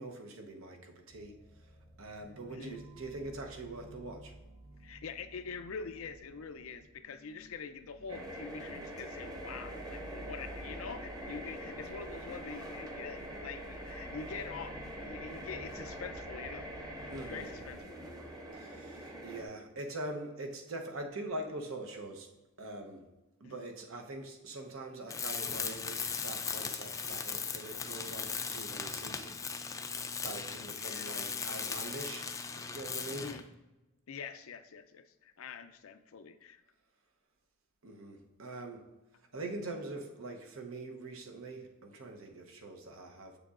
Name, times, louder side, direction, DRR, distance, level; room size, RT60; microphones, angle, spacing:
voice 1, 0.0-1.3 2.0-4.3 17.1-17.5 18.5-22.3 22.6-23.1 23.4-29.5 30.2-32.3 32.6-33.3 37.8-38.8 39.3-43.4, right 2 dB, 80° right, 3 dB, 0.9 m, -43 dB
sound 1, 1.1-17.8, right 1 dB, 35° right, 1.2 m, -53 dB
voice 2, 4.8-16.7 17.1-18.0 23.4-23.7 30.7-31.2 33.1-33.4 34.1-36.6, left 5 dB, 85° left, 10 dB, 0.5 m, -45 dB
sound 2, 8.1-19.4, right 1 dB, 20° right, 0.9 m, -44 dB
Tools, 25.1-33.5, left 5 dB, 15° left, 0.3 m, -38 dB
7.2 x 6.8 x 2.5 m, 1.1 s
head